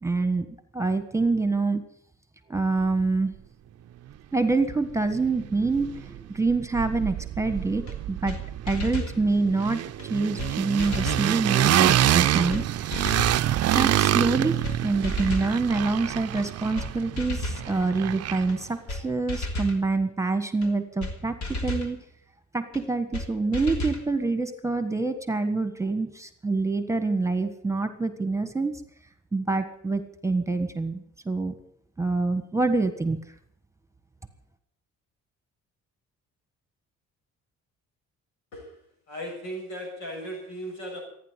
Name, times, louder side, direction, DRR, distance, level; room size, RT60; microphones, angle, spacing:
voice 1, 0.0-0.5 0.7-1.8 2.5-3.3 4.3-8.4 8.7-9.8 10.1-13.1 13.7-22.0 22.5-28.8 29.3-31.5 32.0-33.2, right 3 dB, 10° right, 9 dB, 1.5 m, -26 dB
sound 1, 4.7-4.8 5.1-6.2 6.5-18.7, right 12 dB, 55° right, 0.5 m, -26 dB
sound 2, 7.9-8.0 8.3-8.4 8.7-9.2 10.0-10.1 10.4-10.5 10.8-11.3 12.1-12.2 12.5-12.6 12.9-13.4 14.2-14.3 14.6-14.8 15.0-15.5 16.4-16.5 16.8-16.9 17.2-17.7 18.5-18.6 18.9-19.0 19.3-19.8 20.6-20.7 21.0-21.1 21.4-21.9 22.7-22.8 23.1-23.3 23.5-24.0, left 1 dB, 70° left, 3.2 m, -32 dB
voice 2, 39.1-41.0, equal, 85° left, 1 dB, 7.4 m, -36 dB
15.0 x 9.8 x 8.2 m, 0.67 s
cardioid pair, 90°, 30 cm